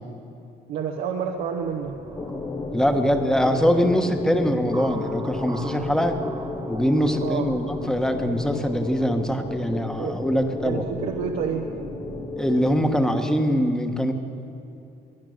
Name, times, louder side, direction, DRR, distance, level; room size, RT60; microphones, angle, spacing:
voice 1, 0.7-2.0 7.2-7.5 10.0-10.2 10.6-11.7, right 7 dB, 80° right, 1 dB, 1.0 m, -28 dB
sound 1, 1.4-12.9, right 4 dB, 25° right, 0.6 m, -40 dB
sound 2, 2.1-13.6, left 4 dB, 25° left, 0.7 m, -33 dB
voice 2, 2.7-6.2 6.7-10.8 12.4-14.1, equal, 5° left, 6 dB, 1.2 m, -23 dB
21.5 x 9.9 x 6.5 m, 2.7 s
cardioid pair, 110°, 17 cm